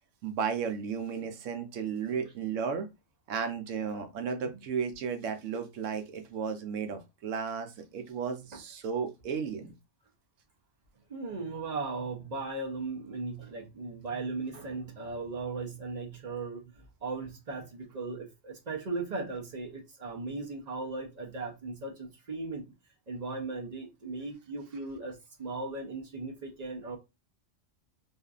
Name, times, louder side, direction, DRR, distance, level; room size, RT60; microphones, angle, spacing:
voice 1, 0.2-2.9 3.3-9.7, right 6 dB, 80° right, 1.0 m, -34 dB
voice 2, 11.1-16.7 17.0-22.7 23.1-27.0, right 3 dB, 45° right, 0.5 m, -37 dB
2.6 x 2.4 x 2.3 m
omnidirectional pair, 1.3 m